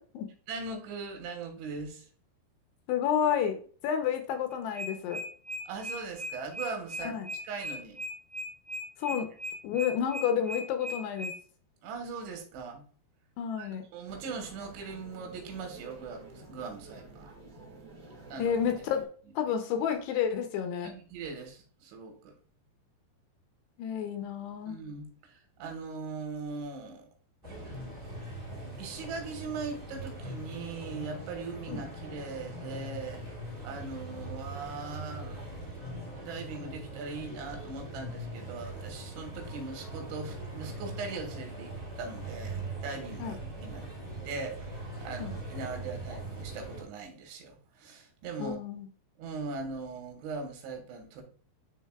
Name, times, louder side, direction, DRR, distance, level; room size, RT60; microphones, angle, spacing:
voice 1, 0.5-2.1 5.7-8.0 9.1-9.2 11.8-12.8 13.6-17.3 18.3-18.6 20.8-22.3 24.7-27.1 27.7-27.8 28.8-33.2 33.6-35.7 36.0-43.4 43.6-43.9 44.3-48.6 49.2-51.2, right 4 dB, 90° right, 4 dB, 3.7 m, -40 dB
voice 2, 2.9-3.6 3.8-5.2 7.0-7.3 9.0-9.3 9.6-11.3 13.4-13.8 18.4-19.0 19.4-20.9 23.8-24.8 31.7-31.8 43.2-43.4 45.2-45.3 48.4-48.9, left 8 dB, 75° left, 6 dB, 2.7 m, -30 dB
sound 1, 4.5-11.3, left 1 dB, 20° left, 1.6 m, -38 dB
sound 2, 14.1-19.1, right 3 dB, 40° right, 1.6 m, -50 dB
sound 3, 27.4-46.8, right 1 dB, 20° right, 1.5 m, -41 dB
11.0 x 3.9 x 2.3 m, 0.42 s
omnidirectional pair, 5.1 m